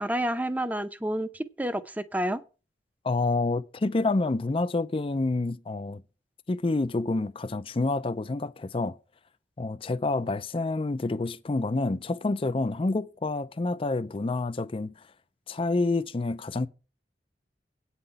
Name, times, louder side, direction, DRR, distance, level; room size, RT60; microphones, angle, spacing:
voice 1, 0.0-2.4, right 1 dB, 10° right, 0.7 m, -29 dB
voice 2, 3.0-6.0 6.5-9.0 9.6-14.9 15.5-16.7, left 3 dB, 30° left, 0.4 m, -28 dB
8.9 x 5.7 x 8.1 m
head